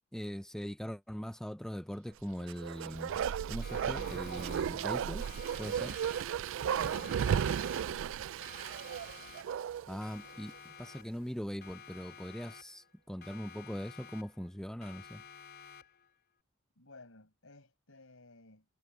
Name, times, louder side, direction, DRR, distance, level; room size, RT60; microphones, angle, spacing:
voice 1, 0.1-3.2 3.5-5.2 5.6-6.0 9.9-15.2, equal, 5° left, 0.5 m, -41 dB
Bark, 2.4-10.0 10.3-10.4, right 8 dB, 65° right, 0.3 m, -34 dB
Siren, 3.6-4.9 5.2-6.5 6.8-8.1 8.4-9.7 10.0-11.3 11.6-12.9 13.2-14.5 14.8-16.1, left 7 dB, 55° left, 4.2 m, -53 dB
voice 2, 6.6-8.3 16.8-18.7, left 2 dB, 75° left, 5.5 m, -55 dB
head